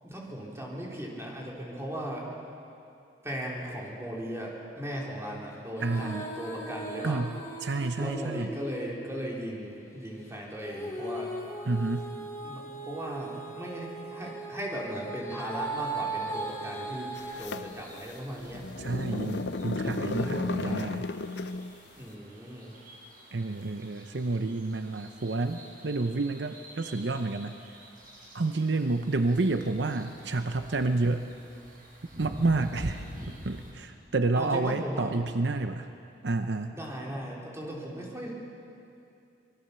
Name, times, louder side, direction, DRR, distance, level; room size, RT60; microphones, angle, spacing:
voice 1, 0.0-2.3 3.2-7.2 8.0-11.3 12.4-17.1 17.4-18.7 19.1-19.4 19.8-20.9 21.9-22.7 34.4-35.1 36.7-38.3, equal, 15° right, -3 dB, 3.8 m, -37 dB
Female singing, 5.7-9.4 10.6-17.3, right 2 dB, 15° left, 3.6 m, -38 dB
voice 2, 5.8-6.3 7.0-8.5 11.7-12.1 18.8-21.1 23.3-27.6 28.3-31.3 32.2-35.9 36.2-36.8, right 3 dB, 70° right, 8 dB, 0.8 m, -29 dB
sound 1, 15.8-33.7, equal, 50° right, 6.6 m, -49 dB
sound 2, 17.2-21.8, left 3 dB, 70° left, 0.7 m, -34 dB
25.0 x 21.0 x 6.9 m, 2.6 s
head